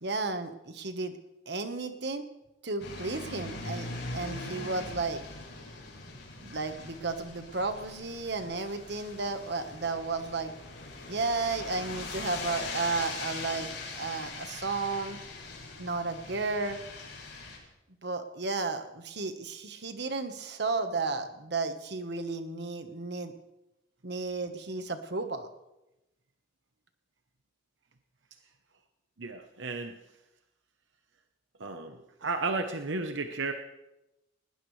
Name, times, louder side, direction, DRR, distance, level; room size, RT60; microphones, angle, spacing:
voice 1, 0.0-1.1 1.5-2.2 2.6-3.9 4.1-5.2 6.4-10.5 11.1-13.7 13.9-15.2 15.8-16.8 18.0-23.3 24.0-25.5, right 3 dB, 60° right, 8 dB, 1.4 m, -33 dB
sound 1, 2.8-17.6, left 3 dB, 70° left, 7.1 m, -41 dB
voice 2, 29.2-30.0 31.6-33.5, right 3 dB, 75° right, 6 dB, 1.0 m, -33 dB
20.0 x 18.5 x 3.3 m, 0.94 s
head